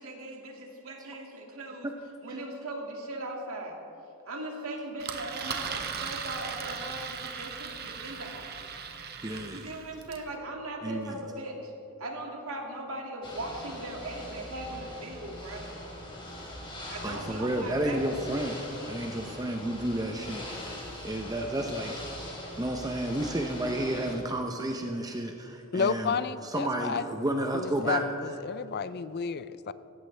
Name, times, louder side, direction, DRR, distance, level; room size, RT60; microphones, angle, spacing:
voice 1, 0.0-1.9 2.2-3.8 4.3-8.5 9.5-11.7 12.0-15.7 16.9-18.0, right 1 dB, 70° right, 0 dB, 2.2 m, -39 dB
Engine, 5.0-10.3, right 6 dB, 45° right, 1.0 m, -38 dB
voice 2, 9.2-9.6 10.8-11.2 17.0-18.6 18.9-22.0 22.6-26.1 26.4-28.0, right 1 dB, 15° right, 3 dB, 0.7 m, -31 dB
Ocean / Boat Water vehicle, 13.2-24.1, left 1 dB, 25° left, 3.0 m, -42 dB
voice 3, 25.7-27.0 27.5-29.7, left 5 dB, 50° left, 15 dB, 0.4 m, -31 dB
17.5 x 15.0 x 3.4 m, 2.8 s
head